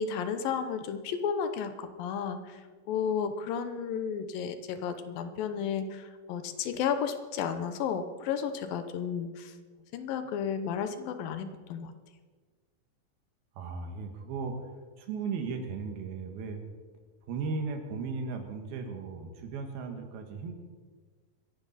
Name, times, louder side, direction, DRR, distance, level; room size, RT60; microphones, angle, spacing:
voice 1, 0.0-2.6 2.9-9.5 9.9-11.9, left 7 dB, 75° left, 9 dB, 2.5 m, -33 dB
voice 2, 13.6-14.6 15.0-16.6 17.3-20.5, right 4 dB, 80° right, 5 dB, 3.4 m, -36 dB
24.0 x 10.5 x 4.1 m, 1.5 s
omnidirectional pair, 4.3 m